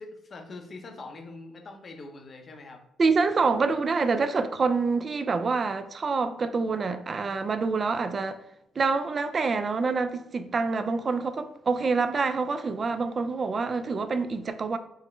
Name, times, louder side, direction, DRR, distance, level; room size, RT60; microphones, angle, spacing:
voice 1, 0.0-2.8, left 3 dB, 45° left, 0.7 m, -43 dB
voice 2, 3.0-8.4 8.8-14.8, right 4 dB, 40° right, 0.4 m, -26 dB
4.7 x 2.1 x 3.2 m
cardioid pair, 90°, 0 cm